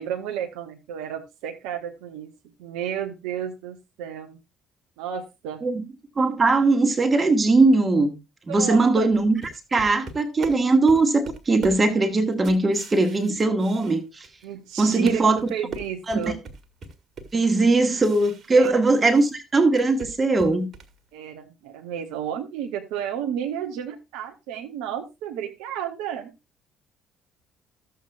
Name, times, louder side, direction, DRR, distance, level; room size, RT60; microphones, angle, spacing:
voice 1, 0.0-2.3 2.6-4.4 5.0-5.6 8.5-9.1 10.9-11.0 14.4-16.4 18.5-18.7 21.1-26.3, right 9 dB, 65° right, 0.7 m, -32 dB
voice 2, 6.2-8.1 8.5-9.4 9.7-14.3 14.8-15.4 16.1-16.2 17.3-20.7, right 3 dB, 30° right, 1.3 m, -20 dB
sound 1, 9.1-14.4 14.7-19.3 19.6-21.0, right 4 dB, 45° right, 1.6 m, -40 dB
13.5 x 7.6 x 2.4 m
figure-of-eight pair, 50°, 0 cm